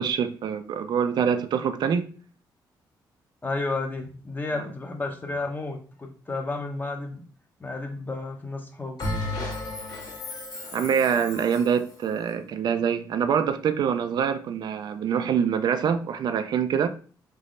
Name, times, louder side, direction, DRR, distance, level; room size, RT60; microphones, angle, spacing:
voice 1, 0.0-2.1 4.5-4.6 10.7-16.9, right 7 dB, 65° right, 0.3 m, -25 dB
voice 2, 3.4-7.2 7.6-9.1, left 3 dB, 25° left, 0.7 m, -32 dB
Bell, 9.0-11.8, left 2 dB, 60° left, 1.3 m, -33 dB
3.4 x 3.0 x 2.4 m
cardioid pair, 95°, 8 cm